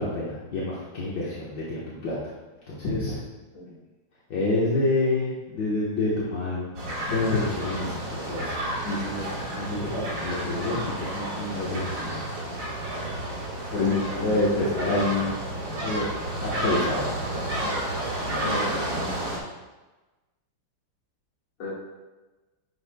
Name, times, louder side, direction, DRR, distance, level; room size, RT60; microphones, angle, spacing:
voice 1, 0.0-2.2 2.7-3.2 4.3-6.7 7.1-8.5 8.8-12.1 13.7-13.9 14.2-15.3 15.8-16.2 16.4-17.0, left 2 dB, 65° left, -7 dB, 1.9 m, -27 dB
sound 1, 6.7-19.4, right 1 dB, 50° right, 1.8 m, -31 dB
voice 2, 13.8-14.3 18.4-19.4 21.6-21.7, left 2 dB, 50° left, -5 dB, 2.1 m, -36 dB
9.4 x 6.6 x 2.2 m, 1.2 s
omnidirectional pair, 2.0 m